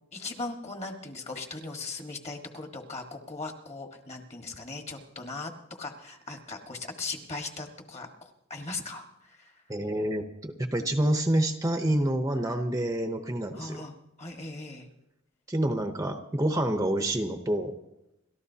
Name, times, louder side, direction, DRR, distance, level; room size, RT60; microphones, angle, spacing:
voice 1, 0.1-5.5 5.8-9.6 13.5-14.9, left 3 dB, 30° left, 4 dB, 1.5 m, -39 dB
voice 2, 9.7-13.8 15.5-17.8, right 1 dB, 15° right, 6 dB, 0.7 m, -27 dB
29.5 x 13.0 x 2.8 m, 0.87 s
head